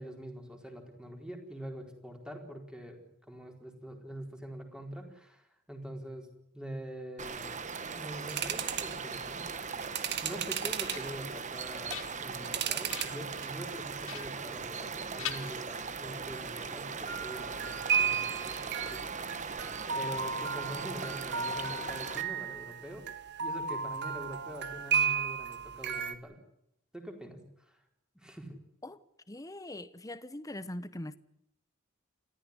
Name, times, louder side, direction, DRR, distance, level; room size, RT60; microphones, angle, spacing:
voice 1, 0.0-6.3 6.5-7.6 8.0-9.6 10.2-19.5 19.9-23.1 23.4-26.4 26.9-27.8 28.1-28.6, equal, 5° right, 4.3 m, -44 dB
sound 1, 7.2-22.2, right 5 dB, 35° right, 1.3 m, -39 dB
sound 2, 8.3-9.0 9.7-11.1 11.7-13.1 13.4-13.9 14.4-14.6 17.1-26.1, right 7 dB, 55° right, 1.6 m, -34 dB
sound 3, 10.8-11.3 11.7-12.5 12.9-13.3 14.0-14.9 15.2-16.1, left 11 dB, 65° left, 1.5 m, -43 dB
voice 2, 29.3-31.2, left 1 dB, 15° left, 1.0 m, -41 dB
29.0 x 13.5 x 9.8 m
head